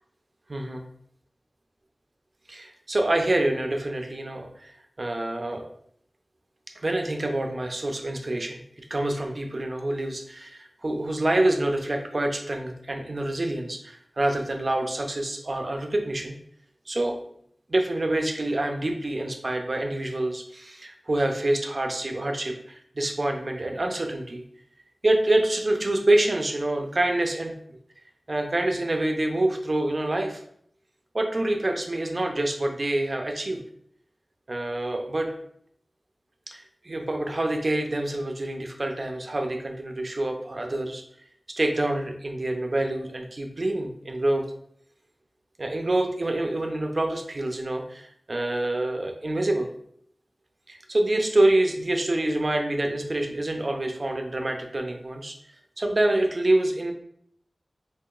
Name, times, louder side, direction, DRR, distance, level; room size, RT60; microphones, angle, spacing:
voice 1, 0.5-0.9 2.5-4.7 5.0-5.6 6.8-16.3 16.9-17.2 17.7-24.4 25.0-27.5 28.3-30.4 31.1-33.6 34.5-35.3 36.5-41.0 41.5-44.5 45.6-49.7 50.7-55.3 55.8-56.9, right 1 dB, 50° right, 3 dB, 0.6 m, -26 dB
4.6 x 2.9 x 2.4 m, 0.68 s
wide cardioid pair, 70°, 0 cm